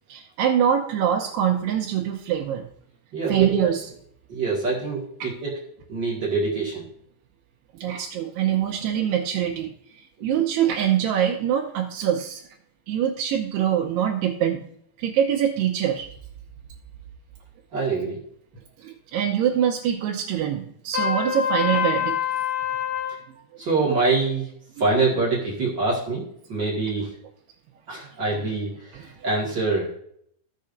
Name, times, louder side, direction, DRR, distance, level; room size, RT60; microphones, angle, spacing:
voice 1, 0.1-2.7 3.3-3.8 5.2-5.3 7.7-12.4 12.9-14.7 15.0-16.1 18.8-22.2, right 9 dB, 80° right, -1 dB, 2.8 m, -24 dB
voice 2, 3.1-3.7 4.3-5.5 5.9-6.9 10.2-10.3 17.7-18.2 23.6-24.5 24.8-27.1 27.9-30.0, right 3 dB, 45° right, -5 dB, 1.5 m, -25 dB
Trumpet, 20.9-23.2, left 9 dB, 65° left, 1.3 m, -25 dB
16.0 x 6.7 x 2.6 m, 0.69 s
omnidirectional pair, 5.0 m